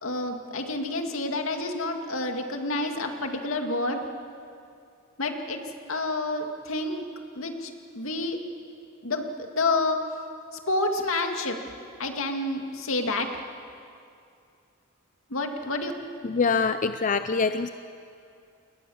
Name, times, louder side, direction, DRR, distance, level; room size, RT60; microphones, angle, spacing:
voice 1, 0.0-4.0 5.2-5.6 5.9-7.1 7.3-8.4 9.0-10.1 10.7-11.6 12.0-13.3 15.3-15.9, left 2 dB, 75° left, 4 dB, 2.4 m, -29 dB
voice 2, 16.2-17.7, left 4 dB, 40° left, 10 dB, 0.5 m, -24 dB
29.5 x 20.5 x 7.2 m, 2.5 s
head